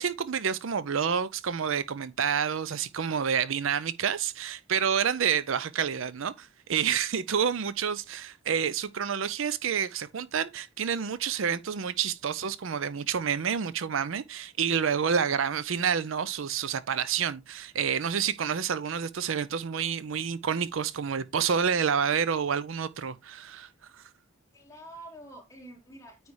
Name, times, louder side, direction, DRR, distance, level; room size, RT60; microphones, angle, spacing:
voice 1, 0.0-24.0, right 7 dB, 70° right, 0.5 m, -29 dB
voice 2, 24.5-26.3, right 1 dB, 15° left, 3.4 m, -47 dB
9.4 x 3.3 x 4.7 m
head